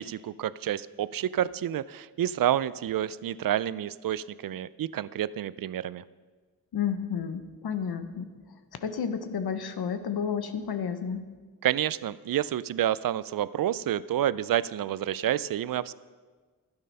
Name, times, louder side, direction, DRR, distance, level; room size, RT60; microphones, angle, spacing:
voice 1, 0.0-6.0 11.6-15.9, right 11 dB, 60° right, 18 dB, 0.5 m, -29 dB
voice 2, 6.7-8.3 8.8-11.3, left 7 dB, 75° left, 9 dB, 1.0 m, -31 dB
12.0 x 9.0 x 5.5 m, 1.4 s
cardioid pair, 50°, 38 cm